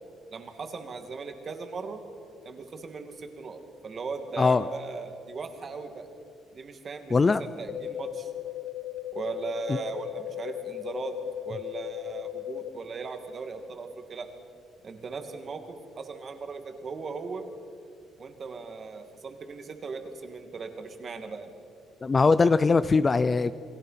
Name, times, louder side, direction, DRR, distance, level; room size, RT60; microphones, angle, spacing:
voice 1, 0.3-2.0 2.4-6.1 6.5-8.3 9.1-11.1 11.4-14.3 14.8-15.6 16.0-17.5 18.2-21.5, right 4 dB, 35° right, 6 dB, 2.3 m, -38 dB
voice 2, 7.1-7.4 9.7-9.8 22.0-23.5, left 4 dB, 25° left, 14 dB, 0.5 m, -21 dB
sound 1, 7.7-12.7, left 13 dB, 40° left, 1.0 m, -37 dB
29.0 x 21.0 x 5.9 m, 2.3 s
cardioid pair, 155°, 0 cm